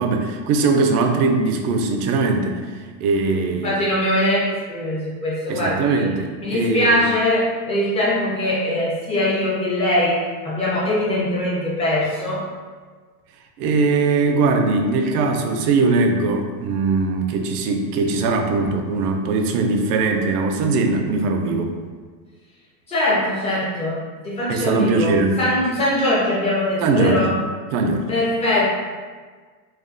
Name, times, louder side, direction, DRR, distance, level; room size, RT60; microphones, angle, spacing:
voice 1, 0.0-2.6 3.0-3.7 5.5-7.1 13.6-21.8 24.5-25.4 26.8-27.2 27.7-28.1, right 3 dB, 70° right, 4 dB, 0.5 m, -20 dB
voice 2, 3.5-6.1 6.4-10.2 10.4-12.4 22.9-27.3 28.1-28.7, left 1 dB, 15° left, -7 dB, 0.5 m, -22 dB
2.3 x 2.3 x 2.5 m, 1.5 s
supercardioid pair, 130°, 49 cm